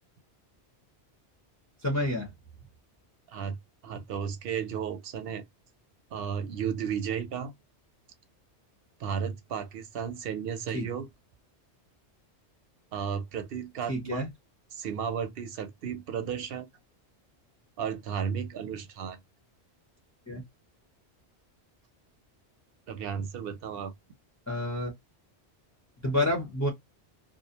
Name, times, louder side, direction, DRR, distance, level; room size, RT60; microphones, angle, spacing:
voice 1, 1.8-2.3 10.7-10.9 13.9-14.3 20.3-20.4 24.5-24.9 26.0-26.7, left 1 dB, 20° left, 0.6 m, -28 dB
voice 2, 3.8-5.4 6.1-7.5 9.0-11.1 12.9-14.3 14.7-16.7 17.8-19.2 22.9-23.9, right 7 dB, 60° right, 0.7 m, -34 dB
2.4 x 2.0 x 2.7 m
omnidirectional pair, 1.2 m